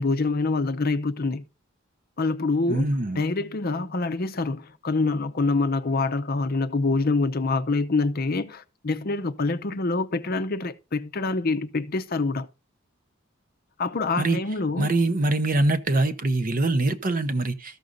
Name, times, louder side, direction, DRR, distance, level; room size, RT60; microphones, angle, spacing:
voice 1, 0.0-1.4 2.2-2.9 3.2-12.5 13.8-14.9, left 3 dB, 45° left, 0.7 m, -26 dB
voice 2, 2.7-3.2 14.2-14.4 14.8-17.8, right 2 dB, 40° right, 0.8 m, -23 dB
13.5 x 6.3 x 4.0 m
head